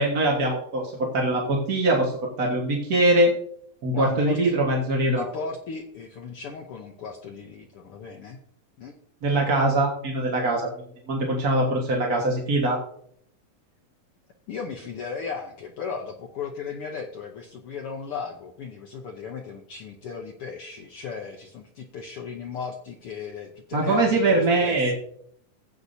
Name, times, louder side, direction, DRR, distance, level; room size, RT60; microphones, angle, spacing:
voice 1, 0.0-3.3 3.8-5.3 9.2-10.7 11.1-12.8 23.7-24.9, right 2 dB, 45° right, -2 dB, 1.2 m, -22 dB
voice 2, 3.9-4.5 5.1-8.4 8.8-9.0 14.5-24.9, left 5 dB, 80° left, 1 dB, 1.2 m, -36 dB
16.0 x 8.4 x 2.7 m, 0.66 s
omnidirectional pair, 3.7 m